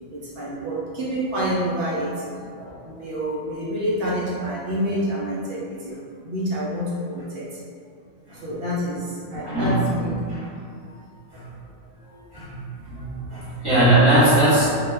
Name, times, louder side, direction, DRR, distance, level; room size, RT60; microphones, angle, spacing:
voice 1, 0.1-2.2 2.8-6.0 6.2-7.5 8.3-10.1, equal, 65° right, -7 dB, 0.8 m, -27 dB
voice 2, 9.4-9.8 12.3-12.5 12.9-14.7, right 1 dB, 20° left, -14 dB, 0.7 m, -19 dB
2.2 x 2.1 x 3.3 m, 2.2 s
omnidirectional pair, 1.3 m